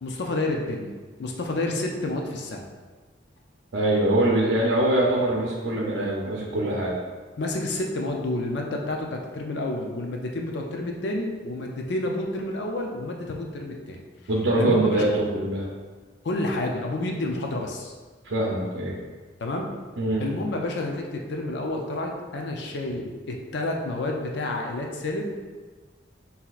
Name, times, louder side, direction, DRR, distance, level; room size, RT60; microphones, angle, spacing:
voice 1, 0.0-2.6 6.7-6.8 7.4-14.0 14.6-15.0 16.2-17.9 19.4-19.7 20.2-25.4, left 2 dB, 65° left, 1 dB, 0.4 m, -29 dB
voice 2, 3.7-6.9 14.3-15.7 18.2-19.0 20.0-20.3, right 1 dB, 75° right, -3 dB, 0.6 m, -23 dB
5.7 x 2.8 x 2.4 m, 1.4 s
head